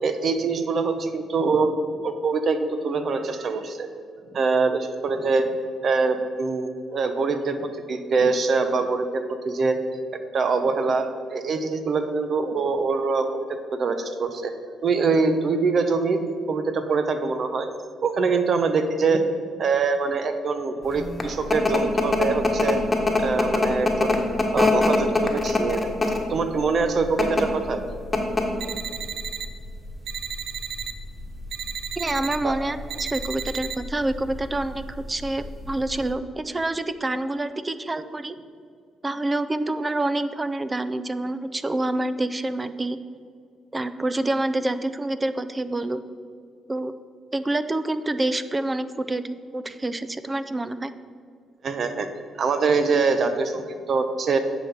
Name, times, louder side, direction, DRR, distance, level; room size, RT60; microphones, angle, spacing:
voice 1, 0.0-1.7 2.0-3.9 4.3-5.5 5.8-7.6 7.9-9.8 10.3-13.4 13.7-14.5 14.8-17.7 18.0-19.2 19.6-22.8 23.2-24.2 24.5-25.9 26.3-27.8 32.4-32.6 51.6-52.1 52.4-54.4, right 4 dB, 55° right, 8 dB, 0.8 m, -24 dB
sound 1, 20.9-36.1, left 2 dB, 20° left, 1.4 m, -25 dB
sound 2, 28.6-29.5 30.1-30.9 31.5-32.4 32.9-33.8, right 8 dB, 75° right, 0.5 m, -33 dB
voice 2, 32.0-38.4 39.0-43.0 43.7-46.0 46.7-46.9 47.3-50.9, right 2 dB, 20° right, 12 dB, 0.5 m, -27 dB
9.0 x 6.0 x 5.3 m, 2.3 s
cardioid pair, 90°, 0 cm